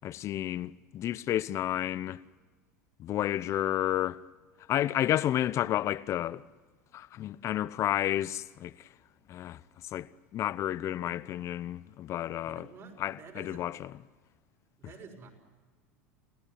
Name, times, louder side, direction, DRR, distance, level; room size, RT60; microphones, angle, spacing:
voice 1, 0.0-2.2 3.0-4.2 4.7-6.4 6.9-8.7 9.3-9.6 9.9-10.1 10.3-12.6 13.0-13.9, left 12 dB, 45° left, 0.8 m, -31 dB
voice 2, 12.4-13.7 13.9-14.1 14.8-15.3, right 5 dB, 40° right, 5.7 m, -50 dB
29.0 x 17.0 x 9.8 m
hypercardioid pair, 85°, 7 cm